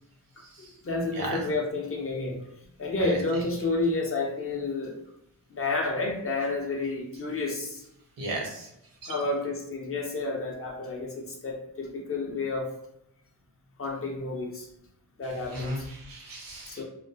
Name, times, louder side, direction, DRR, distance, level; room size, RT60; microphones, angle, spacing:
voice 1, 0.8-2.4 2.8-5.0 5.5-7.8 9.1-12.7 13.8-14.7 15.2-15.9 16.7-16.8, left 3 dB, 40° left, 0 dB, 0.4 m, -30 dB
voice 2, 8.2-8.7 9.0-9.2 15.5-16.8, right 1 dB, 65° right, 0 dB, 0.7 m, -35 dB
2.3 x 2.1 x 2.6 m, 0.80 s
wide cardioid pair, 130°, 38 cm